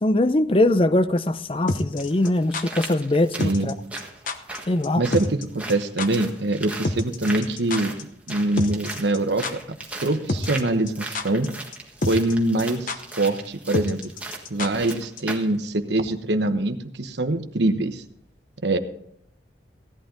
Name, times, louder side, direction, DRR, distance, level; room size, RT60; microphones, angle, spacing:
voice 1, 0.0-3.7 4.7-5.0, left 1 dB, 30° left, 0.6 m, -21 dB
sound 1, 1.1-1.2 2.0-15.6 16.0-16.1, right 2 dB, 5° right, 1.5 m, -38 dB
sound 2, 1.7-2.6 3.4-3.7 4.0-4.1 4.3-4.6 4.8-4.9 5.1-5.4 5.7-5.8 6.0-6.1 6.8-8.0 8.3-8.4 8.6-9.2 9.4-9.5 10.3-10.6 10.9-11.5 11.7-11.8 12.0-12.3 12.6-12.7 12.9-13.0 13.7-14.9 15.2-15.3, left 2 dB, 45° left, 1.0 m, -27 dB
voice 2, 3.4-3.7 5.0-7.9 8.3-9.6 10.0-11.5 12.1-14.0 14.5-18.0 18.6-18.8, right 2 dB, 65° right, 1.1 m, -24 dB
16.0 x 11.5 x 3.9 m
head